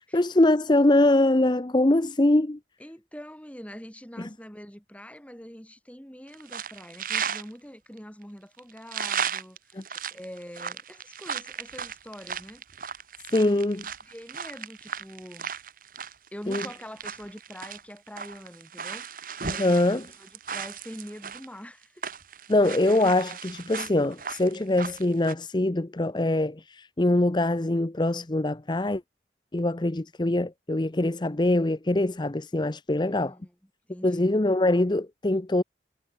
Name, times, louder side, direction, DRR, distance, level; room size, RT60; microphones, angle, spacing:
voice 1, 0.0-2.6 9.7-9.8 13.3-13.9 16.5-16.6 19.5-20.1 22.5-29.0 29.5-33.3 34.0-35.6, left 1 dB, 25° left, 0.7 m, -23 dB
voice 2, 2.8-9.8 10.1-12.6 13.7-15.5 16.3-19.1 19.5-22.0 33.0-33.5 33.9-34.3, equal, 10° left, 6.0 m, -44 dB
sound 1, 6.3-7.5 8.0-8.1 8.6-21.5 21.8-25.3, right 6 dB, 50° right, 4.9 m, -35 dB
head